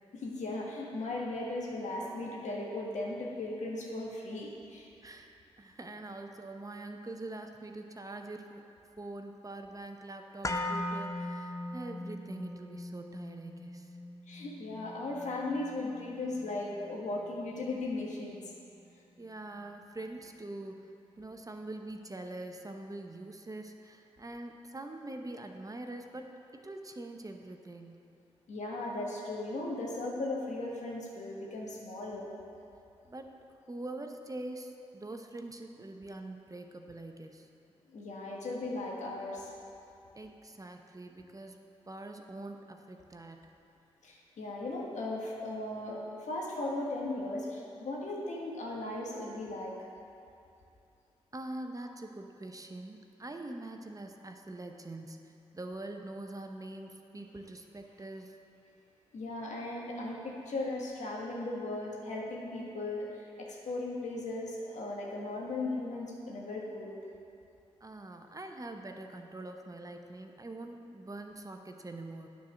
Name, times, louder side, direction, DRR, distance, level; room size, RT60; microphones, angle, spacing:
voice 1, 0.1-4.9 14.3-18.4 28.5-32.3 37.9-39.5 44.0-49.8 59.1-67.0, left 2 dB, 75° left, -2 dB, 1.5 m, -37 dB
voice 2, 5.0-8.6 9.0-14.0 19.2-28.1 33.1-33.4 33.7-37.5 40.1-43.5 51.3-58.4 67.8-72.3, right 2 dB, 30° right, 4 dB, 0.8 m, -44 dB
sound 1, 10.4-18.5 18.8-18.9, left 1 dB, 25° left, 0.7 m, -40 dB
9.3 x 4.5 x 6.2 m, 2.6 s
supercardioid pair, 45°, 12 cm